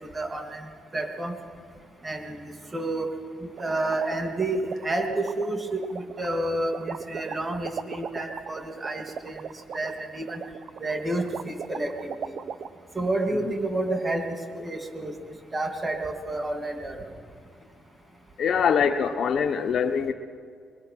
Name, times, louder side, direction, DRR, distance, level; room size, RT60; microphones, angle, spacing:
voice 1, 0.0-1.4 2.0-3.1 3.4-9.4 9.7-10.4 10.8-12.4 12.9-17.0, right 2 dB, 25° right, 4 dB, 2.9 m, -30 dB
sound 1, 3.6-12.7, right 7 dB, 60° right, 0.9 m, -37 dB
voice 2, 18.4-20.1, left 7 dB, 60° left, 5 dB, 1.0 m, -23 dB
22.5 x 21.5 x 6.0 m, 2.2 s
cardioid pair, 90°, 0 cm